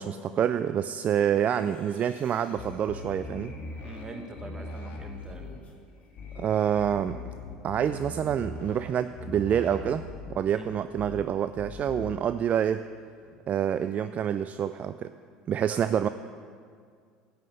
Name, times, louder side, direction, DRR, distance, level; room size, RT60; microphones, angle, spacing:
voice 1, 0.0-3.5 6.4-7.2 7.6-10.1 10.3-12.8 13.5-15.1 15.5-16.1, right 9 dB, 40° right, 12 dB, 0.3 m, -27 dB
sound 1, 1.3-7.4 7.9-8.0, left 2 dB, 35° left, 2.3 m, -52 dB
sound 2, 2.6-4.1 4.4-5.6 6.2-6.4 6.8-8.9 9.2-10.4 11.0-11.2 11.6-12.1, left 3 dB, 60° left, 2.7 m, -40 dB
voice 2, 3.8-5.5 10.5-10.8 13.3-13.4 15.7-15.8, right 2 dB, 20° right, 4 dB, 1.5 m, -43 dB
11.5 x 5.7 x 7.8 m, 2.1 s
hypercardioid pair, 80°, 4 cm